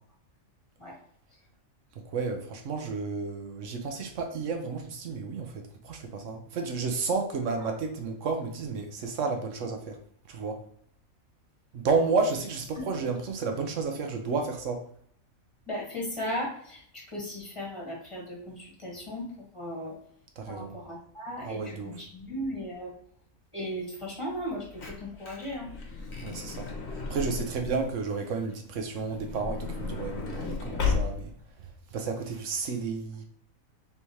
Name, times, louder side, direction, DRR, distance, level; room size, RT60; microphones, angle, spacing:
voice 1, 2.1-10.0 10.3-10.6 11.7-14.8 20.4-20.8 21.4-21.9 26.2-26.7 26.9-31.3 31.9-33.2, right 4 dB, 65° right, 5 dB, 1.1 m, -31 dB
voice 2, 15.7-19.9 20.5-22.9 23.5-25.7, equal, 20° left, -3 dB, 1.6 m, -36 dB
Truck / Door, 24.4-27.9 28.9-31.5 32.2-32.3 32.4-32.6, left 4 dB, 55° left, 1.1 m, -34 dB
4.1 x 3.5 x 3.1 m, 0.63 s
omnidirectional pair, 1.4 m